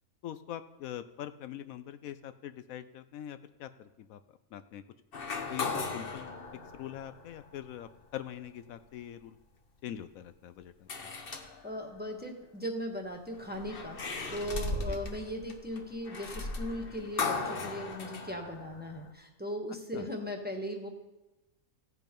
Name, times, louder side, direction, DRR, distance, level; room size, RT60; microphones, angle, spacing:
voice 1, 0.2-4.8 5.5-6.3 6.7-9.4 9.8-11.1 14.9-15.0 19.9-20.1, left 11 dB, 80° left, 11 dB, 1.0 m, -43 dB
sound 1, 5.1-7.7 8.3-8.4 10.9-12.0 13.3-19.1, left 3 dB, 45° left, 1.2 m, -37 dB
voice 2, 11.3-20.9, equal, 5° right, 1 dB, 1.4 m, -38 dB
16.0 x 8.3 x 5.3 m, 1.0 s
omnidirectional pair, 1.5 m